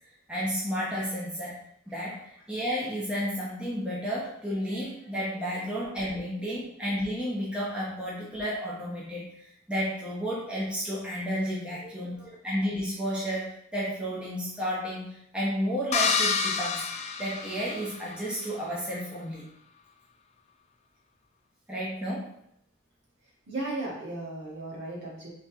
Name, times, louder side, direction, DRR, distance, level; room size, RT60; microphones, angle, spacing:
voice 1, 0.3-1.5 1.9-9.4 9.7-16.9 17.2-19.5 21.7-22.3, equal, 5° right, -7 dB, 0.9 m, -32 dB
voice 2, 6.1-6.5 11.8-12.3 23.5-25.3, right 2 dB, 55° right, -5 dB, 1.7 m, -37 dB
sound 1, 15.9-18.1, left 5 dB, 30° left, 0.3 m, -28 dB
4.2 x 3.2 x 3.6 m, 0.74 s
head